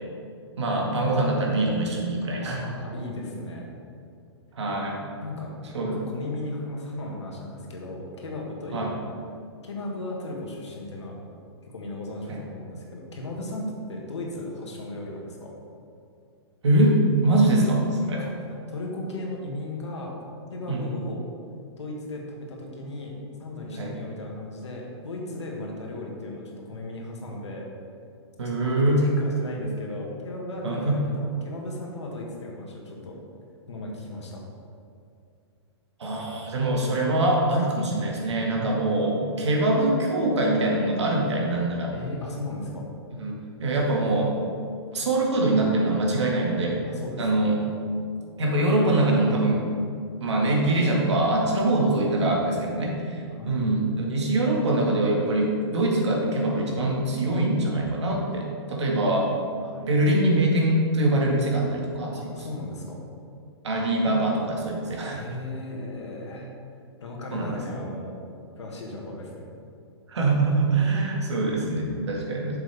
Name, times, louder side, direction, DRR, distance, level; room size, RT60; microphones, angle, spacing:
voice 1, 0.6-2.6 4.5-5.0 5.7-6.0 8.7-8.9 12.3-12.4 16.6-18.2 20.7-21.0 23.8-24.0 28.4-29.0 30.6-31.0 36.0-41.9 43.2-44.4 44.9-46.8 47.2-47.6 48.4-49.7 50.2-59.3 59.8-62.5 63.6-65.2 67.3-67.6 70.1-72.6, right 2 dB, 80° right, -1 dB, 2.0 m, -23 dB
voice 2, 2.6-3.7 5.2-5.5 5.8-9.0 9.6-11.2 11.6-15.6 18.1-18.3 18.7-20.2 20.5-21.2 21.8-23.1 23.4-27.7 28.4-33.2 33.7-34.4 38.6-39.2 41.9-42.9 46.8-47.5 53.4-53.6 59.6-59.9 62.1-63.0 65.1-66.5 67.0-68.2 68.6-69.5, left 2 dB, 85° left, -1 dB, 1.9 m, -36 dB
8.2 x 6.8 x 3.6 m, 2.4 s
hypercardioid pair, 130°, 14 cm